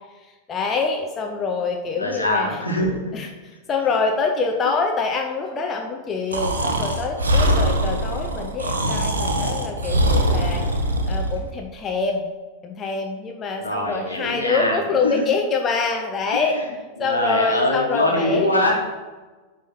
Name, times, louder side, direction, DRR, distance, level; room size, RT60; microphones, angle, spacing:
voice 1, 0.2-2.6 3.1-10.6 11.1-12.3 12.6-16.6 17.0-18.5, left 4 dB, 25° left, 2 dB, 0.7 m, -25 dB
voice 2, 2.0-2.9 13.6-14.8 15.0-15.1 16.5-16.6 17.0-18.7, left 1 dB, 85° left, -2 dB, 1.5 m, -22 dB
Breathing, 6.3-11.4, right 1 dB, 75° right, 0.8 m, -22 dB
9.0 x 3.5 x 4.5 m, 1.3 s
figure-of-eight pair, 90°, 0 cm